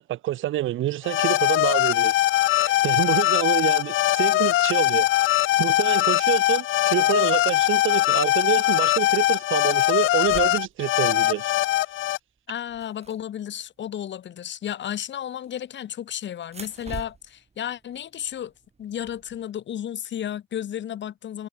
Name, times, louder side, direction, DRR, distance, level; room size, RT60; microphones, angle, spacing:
voice 1, 0.0-2.1 2.5-5.1 5.6-11.5, right 14 dB, 80° right, 1.6 m, -27 dB
sound 1, 1.0-12.2, left 16 dB, 85° left, 1.0 m, -21 dB
sound 2, 9.8-10.8 11.9-12.1 12.4-13.8 15.3-15.9 16.4-19.5, right 4 dB, 30° right, 5.2 m, -44 dB
voice 2, 12.5-18.5 18.8-21.5, left 10 dB, 65° left, 5.4 m, -33 dB
cardioid pair, 90°, 20 cm